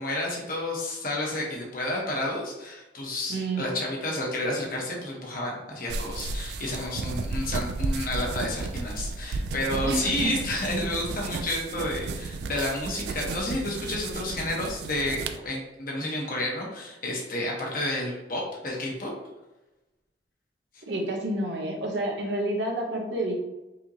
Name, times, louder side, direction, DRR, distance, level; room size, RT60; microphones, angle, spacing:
voice 1, 0.0-19.1, left 1 dB, 50° left, -2 dB, 1.0 m, -30 dB
voice 2, 3.3-3.7 9.8-10.3 20.9-23.4, right 1 dB, 85° right, 0 dB, 0.9 m, -29 dB
sound 1, 5.9-15.4, right 3 dB, 65° right, 0.3 m, -33 dB
5.4 x 2.9 x 2.8 m, 1.0 s
head